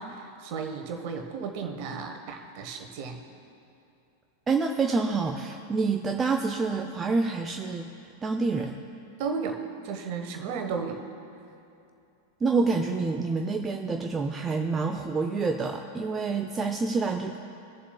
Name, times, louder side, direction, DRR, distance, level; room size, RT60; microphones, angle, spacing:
voice 1, 0.0-3.2 9.2-9.6 9.8-11.0, right 5 dB, 45° right, 4 dB, 1.2 m, -34 dB
voice 2, 4.5-8.8 12.4-17.4, right 4 dB, 20° right, 4 dB, 0.5 m, -27 dB
19.5 x 7.1 x 2.2 m, 2.7 s
figure-of-eight pair, 90°, 0 cm